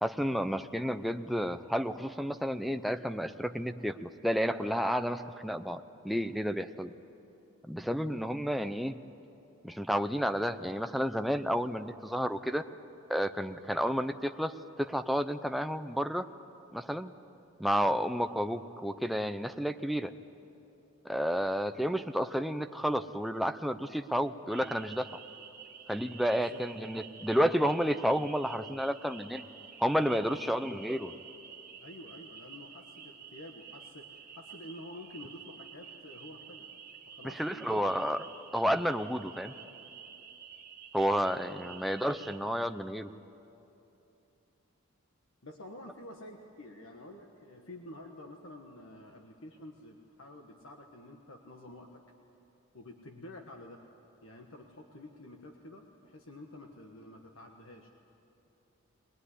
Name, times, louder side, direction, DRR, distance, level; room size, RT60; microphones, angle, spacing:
voice 1, 0.0-6.9 7.6-9.0 9.6-12.7 13.1-16.3 16.7-17.1 17.6-20.1 21.0-25.1 25.9-29.4 29.8-31.1 37.2-38.2 38.5-39.5 40.9-43.1, equal, ahead, 7 dB, 0.6 m, -31 dB
sound 1, 24.5-42.4, right 7 dB, 40° right, 1.8 m, -50 dB
voice 2, 26.3-26.6 30.2-30.6 31.8-36.7 37.1-37.9 41.6-41.9 45.4-52.0 52.7-53.8 54.2-57.9, left 1 dB, 70° left, 3 dB, 1.4 m, -49 dB
21.5 x 20.5 x 9.9 m, 2.9 s
head